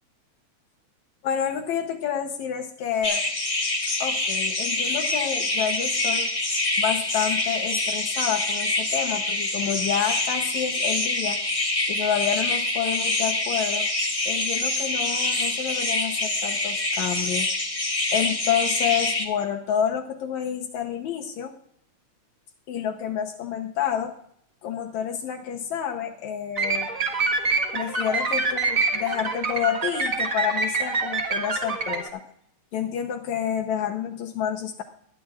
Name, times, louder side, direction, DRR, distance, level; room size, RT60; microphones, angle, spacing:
voice 1, 1.2-3.2 4.0-6.3 6.8-11.4 11.9-13.9 14.3-17.5 18.1-21.5 22.7-24.1 24.6-26.9 27.7-32.2 32.7-34.8, left 9 dB, 75° left, 3 dB, 2.2 m, -29 dB
sound 1, 3.0-19.2, left 2 dB, 20° left, 1.0 m, -26 dB
sound 2, 26.6-32.1, right 3 dB, 35° right, 1.5 m, -26 dB
20.5 x 12.0 x 2.5 m, 0.67 s
omnidirectional pair, 3.4 m